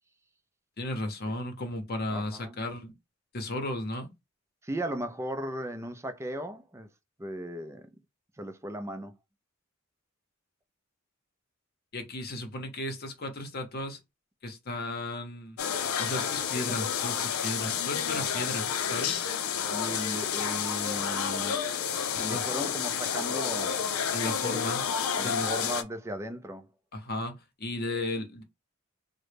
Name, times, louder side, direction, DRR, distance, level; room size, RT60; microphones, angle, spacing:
voice 1, 0.8-2.9 3.3-4.1 11.9-14.0 14.4-15.6 16.0-19.2 22.3-22.5 24.1-24.9 25.2-25.5 26.9-28.4, left 1 dB, 50° left, 0.8 m, -35 dB
voice 2, 2.1-2.6 4.6-6.9 7.2-7.9 8.4-9.2 19.7-21.6 22.2-23.8 25.2-26.7, right 1 dB, 15° right, 0.4 m, -37 dB
sound 1, 15.6-25.8, left 7 dB, 90° left, 0.5 m, -30 dB
3.7 x 2.1 x 3.3 m
head